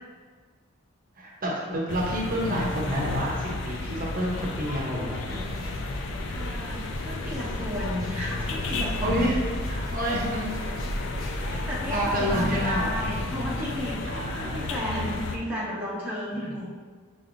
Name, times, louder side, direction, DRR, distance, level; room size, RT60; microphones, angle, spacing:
voice 1, 1.2-5.4 9.0-9.4 9.7-10.7 11.9-12.9 14.1-14.7 16.4-16.5, equal, 40° right, -3 dB, 0.8 m, -29 dB
sound 1, 1.9-15.4, left 2 dB, 55° left, 0.4 m, -32 dB
sound 2, 5.3-14.0, equal, 80° left, 0.8 m, -38 dB
voice 2, 6.3-9.3 11.4-16.7, equal, 5° right, -8 dB, 0.7 m, -33 dB
6.8 x 3.0 x 2.6 m, 1.5 s
head